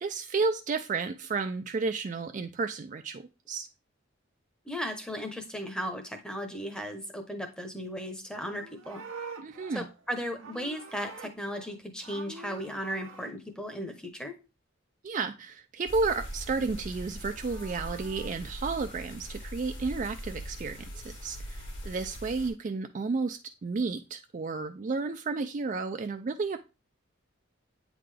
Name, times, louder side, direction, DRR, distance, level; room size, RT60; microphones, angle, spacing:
voice 1, 0.0-3.7 9.4-9.8 15.0-26.6, right 4 dB, 40° right, 0.3 m, -32 dB
voice 2, 4.6-9.0 9.7-14.3, equal, 5° left, 0.8 m, -36 dB
Livestock farm animals working animals, 8.3-11.7 12.0-13.3 17.1-18.3, right 4 dB, 85° right, 0.9 m, -46 dB
sound 1, 15.9-22.5, equal, 60° left, 1.6 m, -41 dB
8.6 x 3.7 x 3.3 m
head